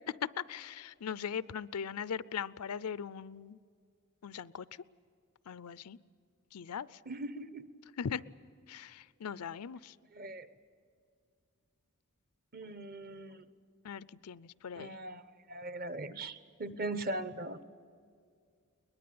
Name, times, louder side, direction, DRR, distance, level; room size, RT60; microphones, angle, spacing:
voice 1, 0.2-3.6 4.2-4.7 5.5-6.0 6.5-7.0 8.0-8.2 8.7-9.9 13.8-14.9, left 7 dB, 85° left, 19 dB, 0.5 m, -39 dB
voice 2, 7.1-7.6 10.1-10.5 12.5-13.4 14.7-15.2 15.5-17.6, right 2 dB, 40° right, 13 dB, 0.9 m, -40 dB
22.5 x 20.5 x 8.6 m, 2.3 s
head